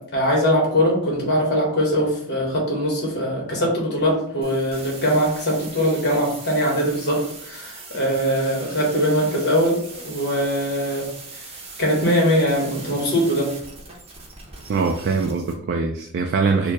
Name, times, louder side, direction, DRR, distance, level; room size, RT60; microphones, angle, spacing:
voice 1, 0.0-11.1 11.8-13.5, equal, 50° left, -2 dB, 1.4 m, -21 dB
sound 1, 4.4-15.5, right 3 dB, 25° right, 0.8 m, -40 dB
voice 2, 14.7-16.7, right 4 dB, 50° right, 3 dB, 0.3 m, -22 dB
4.4 x 2.3 x 2.9 m, 0.67 s
head